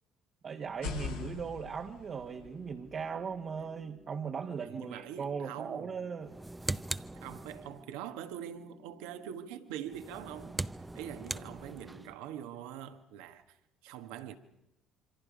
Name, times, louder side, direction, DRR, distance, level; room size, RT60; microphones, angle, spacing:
voice 1, 0.4-6.3, right 6 dB, 45° right, 1.4 m, -38 dB
sound 1, 0.7-4.5, left 5 dB, 85° left, 4.3 m, -44 dB
sound 2, 2.1-12.1, left 1 dB, 10° left, 1.9 m, -58 dB
voice 2, 4.6-5.9 7.1-10.6 10.9-13.6 13.8-14.3, right 10 dB, 75° right, 1.5 m, -44 dB
sound 3, 6.2-7.9 9.8-12.2, right 2 dB, 15° right, 0.7 m, -40 dB
26.5 x 25.0 x 5.2 m
hypercardioid pair, 60°, 0 cm